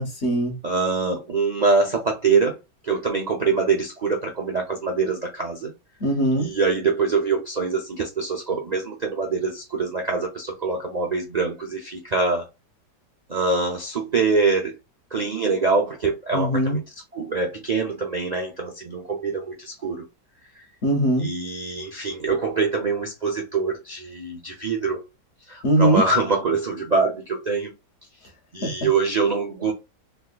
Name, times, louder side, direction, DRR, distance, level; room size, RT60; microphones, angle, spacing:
voice 1, 0.0-0.6 6.0-6.5 16.3-16.8 20.8-21.3 25.6-26.0 28.6-28.7, right 1 dB, 45° left, 1.1 m, -21 dB
voice 2, 0.6-2.5 2.8-5.7 6.4-12.4 13.3-14.8 15.1-16.8 17.1-20.0 21.2-25.0 25.5-27.7 28.5-29.7, right 4 dB, 80° right, 0.3 m, -24 dB
3.5 x 3.1 x 2.3 m
omnidirectional pair, 1.9 m